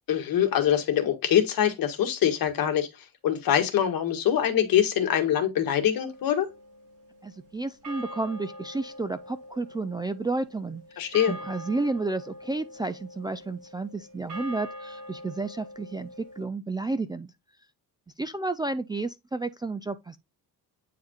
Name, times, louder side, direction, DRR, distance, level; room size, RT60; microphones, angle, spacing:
voice 1, 0.1-2.9 3.2-6.5 11.0-11.3, left 10 dB, 65° left, 1.8 m, -24 dB
sound 1, 6.0-7.4 7.8-16.4, equal, 60° right, 3.8 m, -44 dB
voice 2, 7.2-17.3 18.2-20.2, right 3 dB, 10° right, 0.3 m, -31 dB
9.1 x 4.7 x 2.3 m
cardioid pair, 145°, 37 cm